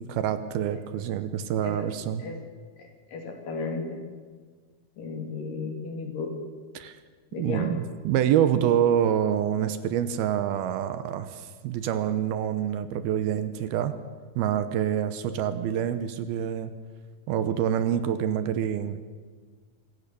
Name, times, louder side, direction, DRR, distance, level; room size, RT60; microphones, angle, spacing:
voice 1, 0.0-2.2 6.8-7.0 7.4-14.0 14.4-16.7 17.3-19.0, right 10 dB, 80° right, 11 dB, 2.7 m, -26 dB
voice 2, 2.8-4.0 5.0-6.3 7.3-7.7, left 4 dB, 60° left, 3 dB, 4.2 m, -34 dB
26.0 x 15.5 x 6.9 m, 1.5 s
omnidirectional pair, 4.6 m